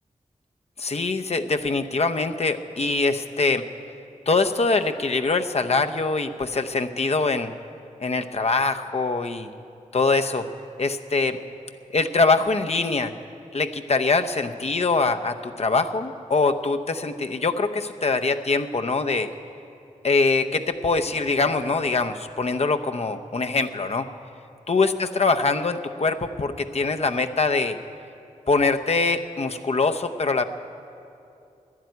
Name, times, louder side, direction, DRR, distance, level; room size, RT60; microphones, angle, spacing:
voice 1, 0.8-3.6 4.3-7.5 8.0-9.5 9.9-10.4 10.8-11.4 11.9-13.1 13.5-19.3 20.0-24.1 24.7-27.8 28.5-30.4, left 3 dB, 50° left, 7 dB, 0.8 m, -23 dB
12.5 x 11.0 x 9.4 m, 2.6 s
cardioid pair, 50°, 13 cm